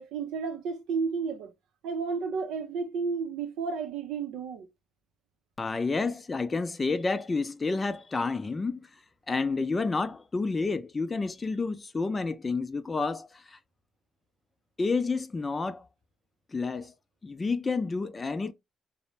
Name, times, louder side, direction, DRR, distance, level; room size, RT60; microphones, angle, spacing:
voice 1, 0.0-1.5 1.8-4.7, right 5 dB, 90° right, 0.5 m, -32 dB
voice 2, 5.6-8.8 9.3-13.6 14.8-15.8 16.5-16.9 17.2-18.5, left 4 dB, 30° left, 0.4 m, -30 dB
2.6 x 2.0 x 3.0 m
cardioid pair, 90°, 0 cm